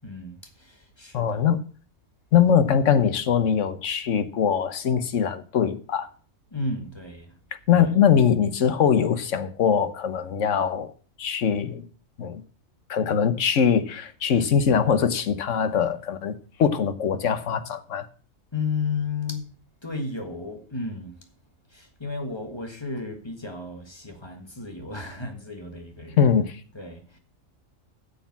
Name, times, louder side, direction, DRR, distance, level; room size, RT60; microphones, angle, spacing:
voice 1, 0.0-1.5 6.5-7.3 7.7-7.9 18.5-19.5 19.8-21.3 21.7-26.2 26.7-27.2, left 4 dB, 20° left, 1.7 m, -33 dB
voice 2, 1.1-1.6 2.3-6.1 7.5-10.9 11.2-11.8 12.2-12.4 12.9-18.1 26.2-26.6, left 7 dB, 65° left, 1.3 m, -22 dB
9.5 x 7.1 x 7.0 m
omnidirectional pair, 1.4 m